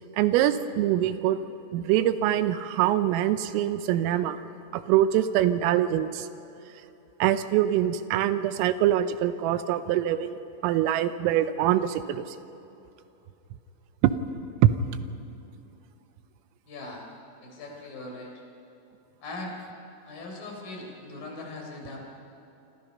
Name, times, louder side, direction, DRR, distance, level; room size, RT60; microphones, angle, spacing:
voice 1, 0.2-1.4 1.7-4.4 4.7-6.3 7.2-10.3 10.6-12.2 14.0-14.1 14.6-14.7, right 12 dB, 90° right, 11 dB, 3.5 m, -24 dB
voice 2, 16.7-17.1 17.4-18.3 19.2-19.6 20.1-22.0, left 2 dB, 45° left, 1 dB, 5.3 m, -40 dB
27.5 x 25.5 x 5.5 m, 2.9 s
omnidirectional pair, 5.9 m